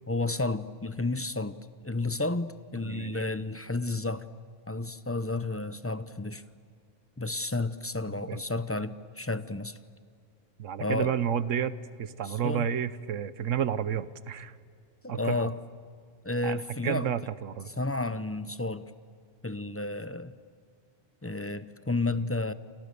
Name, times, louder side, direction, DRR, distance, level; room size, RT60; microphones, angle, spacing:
voice 1, 0.1-4.2 4.7-6.4 7.2-9.8 10.8-11.1 12.2-12.7 15.0-15.6 16.2-17.1 17.8-18.9 19.4-20.3 21.2-22.5, left 2 dB, 15° left, 13 dB, 0.5 m, -31 dB
voice 2, 2.8-3.2 8.1-8.4 10.6-14.5 15.1-15.5 16.4-17.7, right 8 dB, 85° right, 15 dB, 1.3 m, -31 dB
30.0 x 27.0 x 6.9 m, 2.1 s
omnidirectional pair, 1.3 m